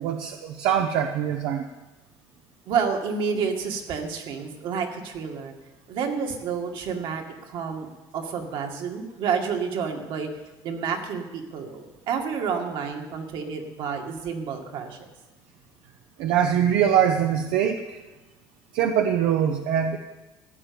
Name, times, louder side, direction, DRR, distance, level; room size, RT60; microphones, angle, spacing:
voice 1, 0.0-1.7 16.2-18.0 18.7-20.0, right 9 dB, 80° right, 5 dB, 0.9 m, -23 dB
voice 2, 2.7-5.5 5.9-7.9 8.1-10.3 10.6-15.1, right 6 dB, 60° right, 3 dB, 2.2 m, -29 dB
14.5 x 9.2 x 7.1 m, 1.1 s
cardioid pair, 135°, 9 cm